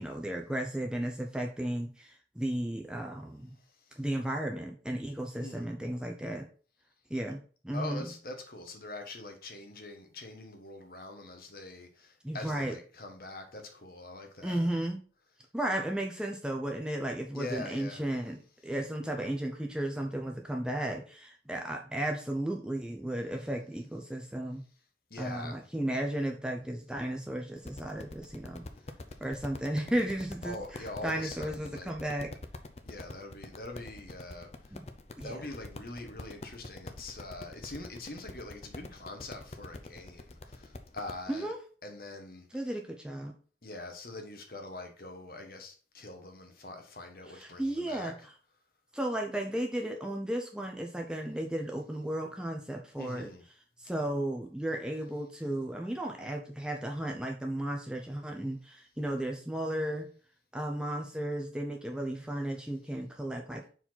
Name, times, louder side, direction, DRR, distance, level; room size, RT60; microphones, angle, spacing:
voice 1, 0.0-3.5 4.0-6.5 7.1-8.1 12.2-12.8 14.4-15.0 15.5-24.6 25.2-28.7 29.2-32.3 34.7-34.9 35.2-35.4 41.3-41.6 42.5-43.3 47.3-48.1 48.9-53.3 53.8-60.1 60.5-63.7, right 1 dB, 5° right, 0.7 m, -34 dB
voice 2, 7.7-14.6 17.3-18.0 25.1-25.7 30.4-31.9 32.9-34.8 35.2-41.5 41.8-42.5 43.6-48.1 53.0-53.4, left 2 dB, 55° left, 1.3 m, -43 dB
sound 1, 27.6-41.2, left 2 dB, 35° left, 0.6 m, -46 dB
4.7 x 4.2 x 5.7 m
head